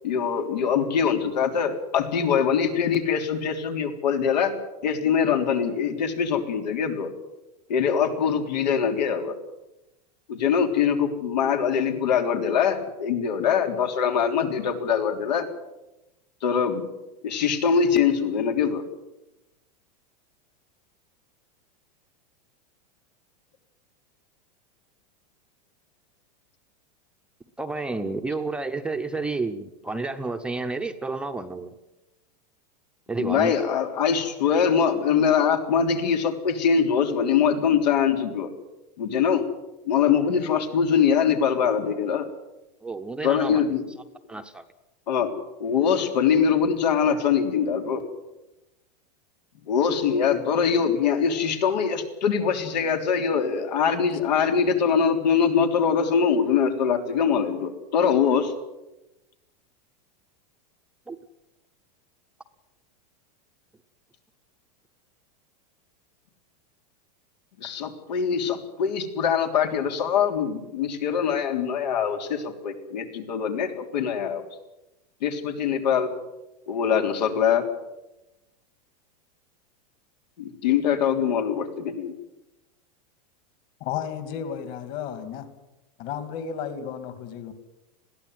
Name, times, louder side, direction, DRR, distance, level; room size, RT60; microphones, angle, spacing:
voice 1, 0.0-4.5 4.8-7.1 7.7-9.3 10.3-15.5 16.4-16.8 17.2-18.8 33.2-38.5 39.0-39.5 39.8-42.3 43.2-43.8 45.1-45.3 45.6-48.0 49.7-58.5 67.6-74.5 75.2-76.1 76.7-77.7 80.4-82.1, left 7 dB, 90° left, 5 dB, 3.6 m, -23 dB
voice 2, 27.6-31.7 33.1-33.7 42.8-43.7 44.3-44.6 61.1-61.2, right 3 dB, 5° right, 6 dB, 0.7 m, -30 dB
voice 3, 83.8-85.5 86.0-87.5, left 8 dB, 40° left, 10 dB, 2.5 m, -33 dB
21.5 x 16.0 x 9.5 m, 0.98 s
supercardioid pair, 160°, 21 cm